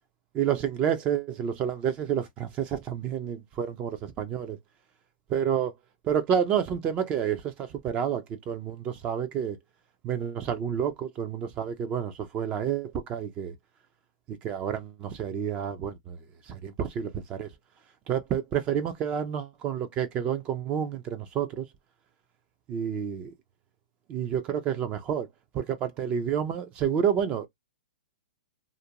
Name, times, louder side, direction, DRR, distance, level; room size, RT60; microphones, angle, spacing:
voice 1, 0.3-4.6 5.3-5.7 6.0-9.6 10.0-13.5 14.3-16.2 16.5-17.5 18.1-21.7 22.7-23.3 24.1-25.3 25.5-27.5, right 8 dB, 25° right, 0.3 m, -29 dB
2.4 x 2.1 x 2.8 m
hypercardioid pair, 150°, 5 cm